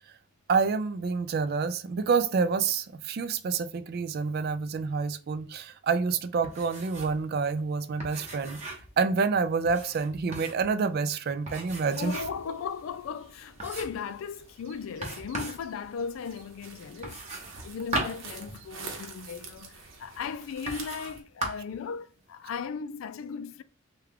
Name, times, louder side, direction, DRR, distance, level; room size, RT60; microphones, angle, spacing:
voice 1, 0.5-8.6 9.0-12.1, right 5 dB, 50° right, 0.3 m, -28 dB
sound 1, 6.4-7.2 7.5-7.6 8.0-9.0 9.6-10.7 11.5-12.5 12.9-13.0 13.6-14.1 15.0-15.7 17.0-19.0 19.8-19.9 20.7-21.2 21.4-21.8, right 1 dB, 35° right, 0.9 m, -37 dB
voice 2, 11.9-17.2 17.6-23.6, left 6 dB, 85° left, 0.3 m, -37 dB
sound 2, 12.0-21.2, right 4 dB, 75° right, 0.8 m, -48 dB
3.4 x 2.3 x 3.5 m
head